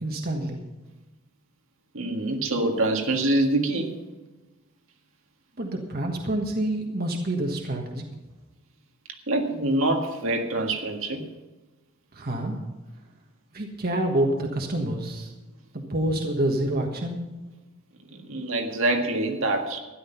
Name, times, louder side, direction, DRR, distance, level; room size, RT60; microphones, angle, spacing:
voice 1, 0.0-0.6 5.6-8.0 12.1-12.6 13.5-15.3 15.7-17.2, right 1 dB, 45° right, 2 dB, 1.5 m, -27 dB
voice 2, 1.9-4.0 9.3-11.2 18.1-19.8, right 2 dB, 65° right, 3 dB, 1.8 m, -25 dB
13.0 x 11.0 x 5.8 m, 1.1 s
head